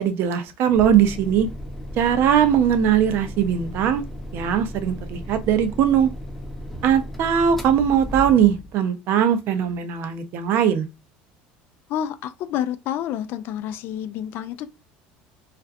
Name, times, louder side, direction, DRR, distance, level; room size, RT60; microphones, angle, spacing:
voice 1, 0.0-1.5 2.0-4.0 4.3-6.1 6.8-10.9, right 9 dB, 60° right, 0.5 m, -20 dB
sound 1, 0.7-8.8, left 1 dB, 5° left, 0.6 m, -35 dB
voice 2, 11.9-14.7, left 10 dB, 60° left, 0.3 m, -29 dB
2.4 x 2.2 x 2.5 m
supercardioid pair, 110°, 4 cm